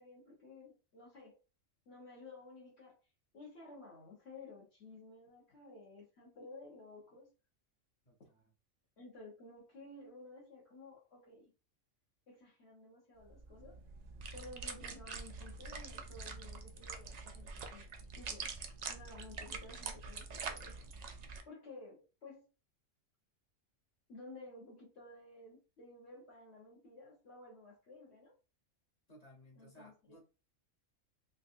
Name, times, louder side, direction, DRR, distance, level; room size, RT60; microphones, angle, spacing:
voice 1, 0.0-1.4 1.9-3.0 3.3-7.3 9.0-11.5 12.3-13.8 14.3-17.9 18.1-18.5 18.9-20.9 21.5-22.5 24.1-28.4 29.6-30.2, left 2 dB, 55° left, 1.5 m, -54 dB
voice 2, 8.1-8.4 29.1-30.2, equal, 35° left, 1.0 m, -59 dB
sound 1, 13.2-21.4, right 4 dB, 75° right, 0.3 m, -45 dB
4.1 x 2.4 x 2.6 m
omnidirectional pair, 1.3 m